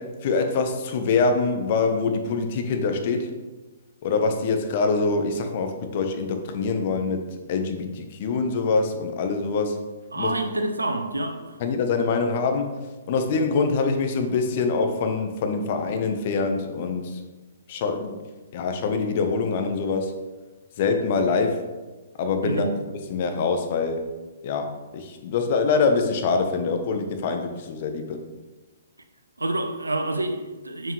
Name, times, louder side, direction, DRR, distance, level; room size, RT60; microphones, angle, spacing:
voice 1, 0.0-3.3 4.0-9.8 10.1-10.3 11.6-12.7 13.1-17.2 17.7-18.2 18.5-20.1 20.8-21.6 22.2-22.7 23.1-24.0 24.4-24.7 24.9-28.2, left 4 dB, 45° left, 5 dB, 1.0 m, -24 dB
voice 2, 10.1-11.6 22.4-22.8 29.4-30.9, right 2 dB, 85° right, 7 dB, 0.8 m, -28 dB
6.6 x 6.2 x 3.2 m, 1.2 s
figure-of-eight pair, 125°, 0 cm